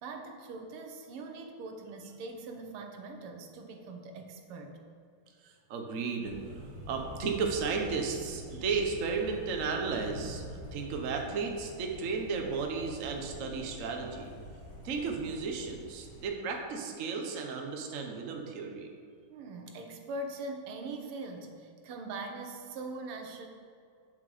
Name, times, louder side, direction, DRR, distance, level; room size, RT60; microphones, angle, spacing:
voice 1, 0.0-4.8 14.8-14.9 19.3-23.5, right 2 dB, 85° right, 4 dB, 1.9 m, -42 dB
voice 2, 5.4-6.3 6.9-14.3 14.8-18.9, right 5 dB, 50° right, 2 dB, 1.1 m, -34 dB
Thunder, 6.2-16.3, equal, 70° left, 2.9 m, -46 dB
8.2 x 7.5 x 5.0 m, 2.3 s
omnidirectional pair, 2.4 m